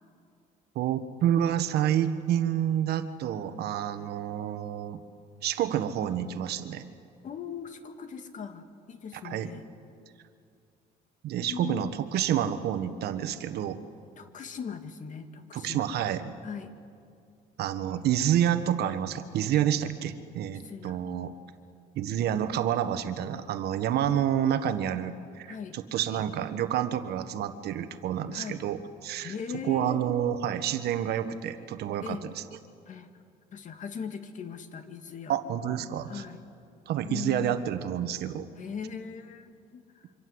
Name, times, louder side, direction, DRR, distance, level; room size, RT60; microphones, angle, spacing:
voice 1, 0.7-5.0 5.4-6.8 9.2-9.5 11.2-13.8 15.5-16.3 17.6-21.3 21.9-25.5 25.7-29.3 29.6-32.3 35.3-36.2 36.9-38.5, right 10 dB, 70° right, 10 dB, 1.4 m, -28 dB
voice 2, 7.2-9.7 11.4-11.9 14.2-15.9 16.4-16.7 20.6-21.0 25.5-25.8 28.3-28.6 29.2-30.0 32.0-32.3 32.9-33.2 33.5-35.4 36.1-36.4 37.0-37.6 38.6-40.1, left 6 dB, 50° left, 8 dB, 2.0 m, -39 dB
27.0 x 25.0 x 8.0 m, 2.4 s
cardioid pair, 110°, 17 cm